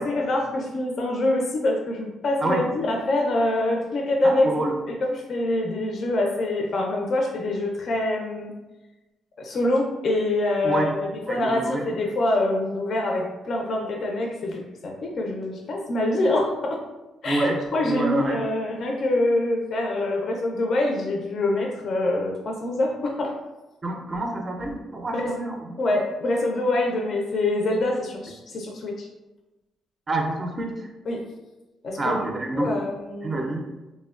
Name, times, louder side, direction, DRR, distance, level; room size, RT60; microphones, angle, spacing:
voice 1, 0.0-4.5 4.9-8.5 9.4-16.8 17.2-23.3 25.1-25.3 25.8-29.1 31.1-31.2 31.8-32.2 32.5-33.4, left 2 dB, 55° left, 0 dB, 0.4 m, -25 dB
voice 2, 4.2-4.8 10.6-10.9 11.3-11.9 17.2-18.4 23.8-25.8 30.1-30.9 32.0-32.7 33.2-33.7, right 2 dB, 30° right, 2 dB, 0.4 m, -27 dB
3.0 x 2.1 x 2.3 m, 1.0 s
cardioid pair, 90°, 0 cm